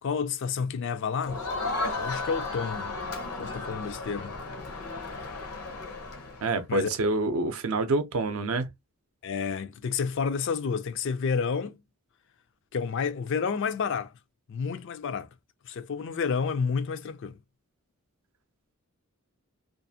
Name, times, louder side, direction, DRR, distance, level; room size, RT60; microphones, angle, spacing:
voice 1, 0.0-1.4 2.0-3.0 3.4-4.3 6.7-6.9 9.2-11.8 12.7-14.1 14.5-15.3 15.6-17.4, left 5 dB, 55° left, 0.3 m, -30 dB
Crowd, 1.2-6.6, left 3 dB, 80° left, 0.7 m, -34 dB
voice 2, 6.4-8.7, right 2 dB, 70° right, 0.5 m, -27 dB
2.5 x 2.4 x 2.6 m
head